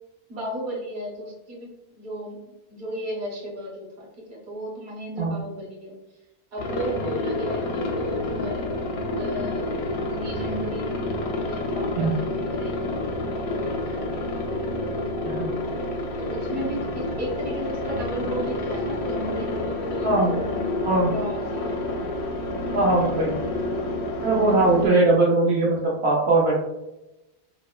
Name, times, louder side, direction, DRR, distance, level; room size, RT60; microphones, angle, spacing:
voice 1, 0.3-1.7 2.0-5.9 6.5-8.8 9.2-14.5 16.2-20.6 21.1-21.8, equal, 50° right, -3 dB, 1.0 m, -35 dB
Aircraft, 6.6-24.9, left 2 dB, 85° left, 0.9 m, -29 dB
voice 2, 22.7-23.3 24.2-26.6, right 2 dB, 70° right, -4 dB, 0.8 m, -20 dB
4.1 x 2.0 x 2.2 m, 0.95 s
omnidirectional pair, 1.1 m